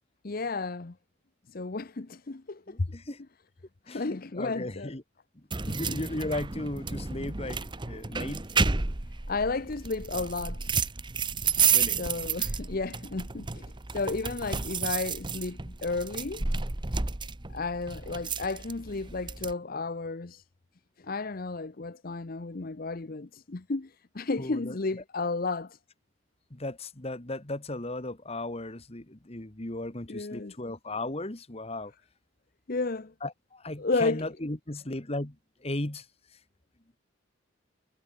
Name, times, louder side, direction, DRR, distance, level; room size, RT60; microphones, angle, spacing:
voice 1, 0.2-1.0 1.5-2.9 3.9-4.9 5.7-6.0 9.3-10.7 12.0-16.4 17.5-20.4 21.0-25.8 30.1-30.5 32.7-33.1 33.8-34.3, left 3 dB, 45° left, 0.8 m, -33 dB
voice 2, 2.7-3.2 3.9-5.0 5.3-8.4 11.7-12.0 15.7-15.8 24.4-24.8 26.5-31.9 33.2-36.1, left 2 dB, 30° left, 1.7 m, -36 dB
sound 1, 5.5-19.5, right 5 dB, 25° right, 1.0 m, -31 dB
head